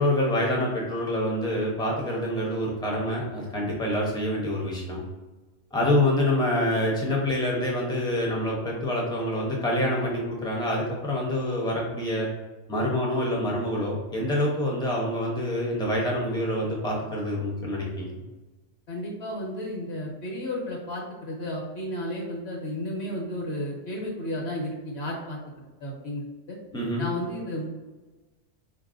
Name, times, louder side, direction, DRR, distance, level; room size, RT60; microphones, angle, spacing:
voice 1, 0.0-5.0 5.7-12.3 12.7-18.1 26.7-27.1, left 1 dB, 5° left, -3 dB, 0.6 m, -26 dB
voice 2, 18.9-25.4 25.8-26.6 27.0-27.7, left 1 dB, 65° left, -1 dB, 1.2 m, -33 dB
4.0 x 2.6 x 2.5 m, 1.2 s
omnidirectional pair, 1.2 m